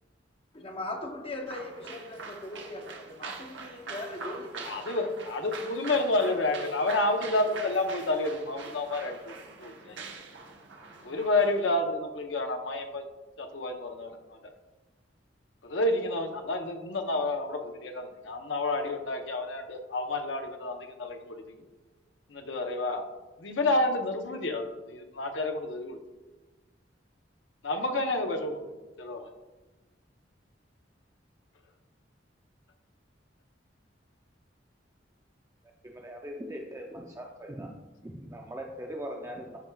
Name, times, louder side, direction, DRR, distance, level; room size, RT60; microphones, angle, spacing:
voice 1, 0.5-4.7, left 2 dB, 30° left, 3 dB, 0.8 m, -39 dB
sound 1, 1.5-11.7, right 4 dB, 75° right, 1.0 m, -43 dB
voice 2, 4.7-9.3 9.6-10.0 11.0-13.0 13.4-14.1 15.6-21.4 22.3-23.0 23.4-26.0 27.6-28.7 29.0-29.3, left 2 dB, 90° left, 5 dB, 0.8 m, -29 dB
voice 3, 35.8-37.7 38.0-39.6, equal, 15° right, 1 dB, 0.5 m, -40 dB
13.0 x 4.5 x 2.3 m, 1.2 s
head